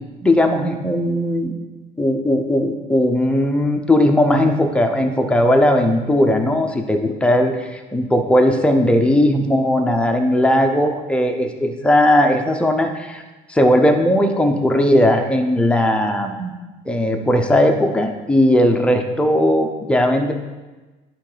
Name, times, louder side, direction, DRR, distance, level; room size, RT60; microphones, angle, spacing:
voice 1, 0.2-1.5 2.0-13.2 13.5-16.5 16.9-20.3, left 1 dB, 5° left, 3 dB, 0.6 m, -17 dB
11.0 x 3.7 x 4.9 m, 1.2 s
cardioid pair, 150°, 17 cm